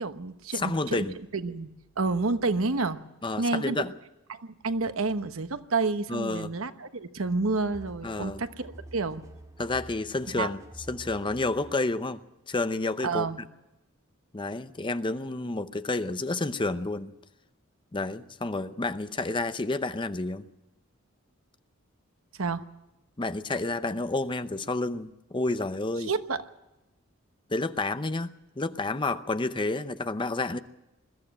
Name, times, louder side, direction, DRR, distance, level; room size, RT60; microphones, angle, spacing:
voice 1, 0.0-1.0 1.3-3.0 3.4-3.8 4.3-9.2 10.3-10.5 13.0-13.4 22.4-22.6 26.1-26.4, right 3 dB, 75° right, 10 dB, 1.1 m, -29 dB
voice 2, 0.5-1.2 3.2-3.9 6.1-6.5 8.0-8.4 9.6-10.6 10.9-12.2 12.5-13.5 14.3-17.1 17.9-20.4 23.2-26.1 27.5-30.6, left 2 dB, 25° left, 11 dB, 0.7 m, -30 dB
sound 1, 7.7-11.9, right 1 dB, 15° right, 2.2 m, -48 dB
22.0 x 14.0 x 8.8 m, 0.96 s
head